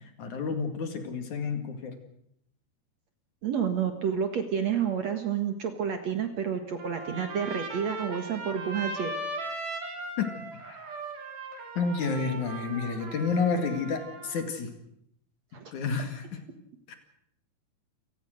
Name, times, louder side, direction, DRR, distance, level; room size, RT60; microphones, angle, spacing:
voice 1, 0.2-1.9 10.2-10.3 10.7-10.8 11.8-14.8 15.7-16.4 16.9-17.0, left 5 dB, 55° left, 6 dB, 3.3 m, -30 dB
voice 2, 3.4-9.1 15.5-15.7, right 7 dB, 55° right, 7 dB, 2.3 m, -30 dB
Trumpet, 6.8-14.4, right 2 dB, 70° right, 5.2 m, -38 dB
28.5 x 18.5 x 6.5 m, 0.75 s
omnidirectional pair, 4.4 m